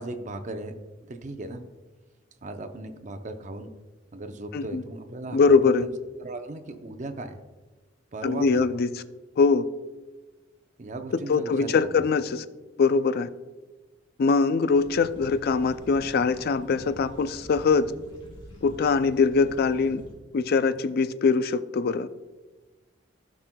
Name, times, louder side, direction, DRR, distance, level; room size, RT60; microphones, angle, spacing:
voice 1, 0.0-1.6 2.4-3.7 4.1-5.9 6.2-7.4 8.1-8.6 10.8-12.1, right 2 dB, 40° right, 7 dB, 0.6 m, -37 dB
voice 2, 5.3-5.9 8.2-9.0 9.4-9.6 11.3-12.4 12.8-13.3 14.2-17.9 18.6-20.0 20.3-22.1, left 4 dB, 50° left, 13 dB, 0.3 m, -22 dB
sound 1, 14.7-20.1, equal, 25° left, 2.1 m, -46 dB
14.0 x 6.0 x 2.2 m, 1.2 s
head